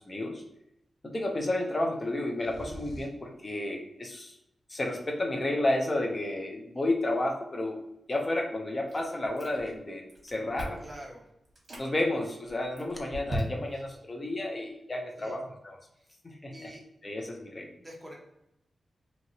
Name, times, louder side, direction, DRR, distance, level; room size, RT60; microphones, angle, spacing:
voice 1, 0.1-0.4 1.1-4.4 4.7-7.8 8.1-10.8 11.8-15.8 16.2-16.7 17.0-17.7, left 1 dB, 30° left, 1 dB, 0.6 m, -31 dB
sound 1, 2.4-3.3, right 1 dB, 90° left, 0.6 m, -44 dB
Chewing mastication, 8.9-9.8 10.1-10.9 11.4-11.9 12.4-13.9, equal, 45° right, 1.2 m, -38 dB
voice 2, 10.8-11.3 15.2-15.4 15.9-16.1 16.5-16.8 17.8-18.1, equal, 10° right, -3 dB, 0.9 m, -46 dB
2.8 x 2.8 x 2.8 m, 0.84 s
wide cardioid pair, 100°, 0 cm